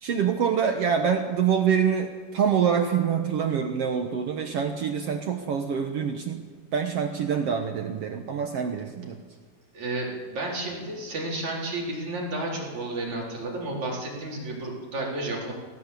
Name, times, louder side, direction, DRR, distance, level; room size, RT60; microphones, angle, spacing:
voice 1, 0.0-6.5 6.7-9.2, right 7 dB, 85° right, 5 dB, 1.3 m, -25 dB
voice 2, 9.7-15.5, right 2 dB, 45° right, -2 dB, 5.3 m, -32 dB
19.5 x 17.0 x 8.4 m, 1.5 s
omnidirectional pair, 4.6 m